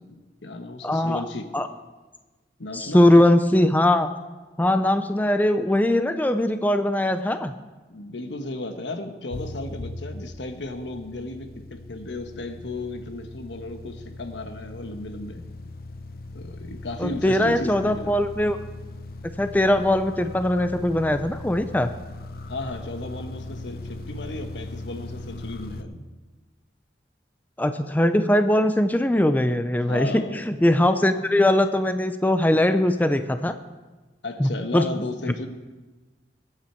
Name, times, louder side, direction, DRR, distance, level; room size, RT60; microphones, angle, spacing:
voice 1, 0.0-1.5 2.6-3.3 7.9-15.4 16.3-18.1 22.5-26.0 27.7-27.9 29.8-30.4 34.2-35.5, left 2 dB, 85° left, 7 dB, 1.2 m, -35 dB
voice 2, 0.8-1.2 1.5-1.7 2.7-4.1 4.6-7.5 17.0-18.6 19.4-21.9 27.6-33.5 34.4-34.9, left 1 dB, 10° left, 9 dB, 0.4 m, -21 dB
sound 1, 9.3-25.8, left 2 dB, 55° left, 0.6 m, -39 dB
20.5 x 8.8 x 4.5 m, 1.2 s
head